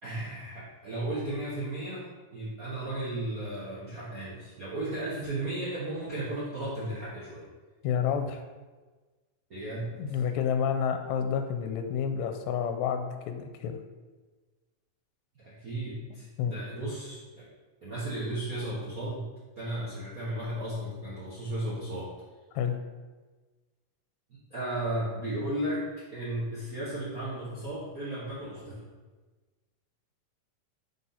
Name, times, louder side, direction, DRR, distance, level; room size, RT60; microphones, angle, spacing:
voice 1, 0.0-7.4 9.5-10.2 15.4-17.4 17.8-19.3 19.6-22.1 24.5-25.8 26.1-28.8, right 1 dB, 85° right, -8 dB, 0.7 m, -35 dB
voice 2, 7.8-8.4 10.0-13.8 16.4-16.6 22.5-22.8, left 7 dB, 80° left, 6 dB, 1.8 m, -29 dB
4.4 x 4.0 x 5.5 m, 1.3 s
omnidirectional pair, 3.3 m